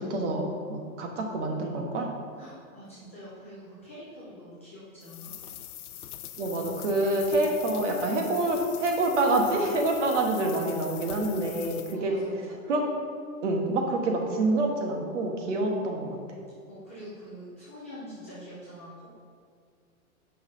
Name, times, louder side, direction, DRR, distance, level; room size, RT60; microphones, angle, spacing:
voice 1, 0.0-2.1 6.4-12.1 12.7-12.9 13.4-16.2, right 2 dB, 55° right, 2 dB, 1.3 m, -27 dB
voice 2, 2.4-5.3 11.9-12.4 16.7-18.9, equal, 10° left, -12 dB, 0.4 m, -45 dB
sound 1, 5.0-12.0, left 11 dB, 90° left, 0.6 m, -42 dB
7.2 x 5.7 x 3.8 m, 2.2 s
hypercardioid pair, 160°, 44 cm